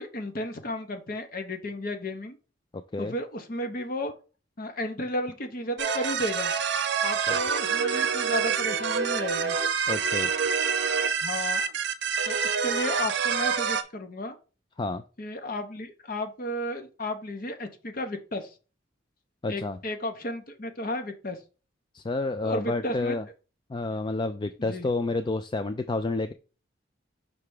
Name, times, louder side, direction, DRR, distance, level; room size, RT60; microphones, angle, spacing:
voice 1, 0.0-2.4 3.0-4.1 4.6-6.5 7.0-9.5 11.2-11.6 12.3-14.3 15.2-18.5 19.5-21.4 22.4-23.2 24.6-24.9, left 1 dB, 50° left, 7 dB, 1.1 m, -33 dB
sound 1, 5.8-13.8, right 6 dB, 65° right, 0.7 m, -27 dB
voice 2, 9.9-10.3 14.8-15.0 19.4-19.8 21.9-23.2 23.7-26.3, left 3 dB, 25° left, 10 dB, 0.3 m, -29 dB
5.8 x 3.4 x 4.8 m, 0.34 s
head